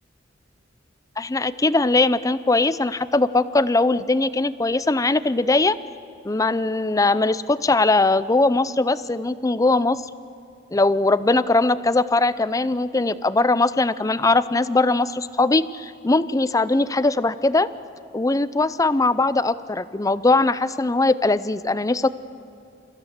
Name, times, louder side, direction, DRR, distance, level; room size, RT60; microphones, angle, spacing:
voice 1, 1.2-5.7 6.2-10.0 10.7-17.7 18.1-22.1, left 2 dB, 15° left, 15 dB, 0.5 m, -20 dB
29.0 x 15.0 x 7.3 m, 2.6 s
head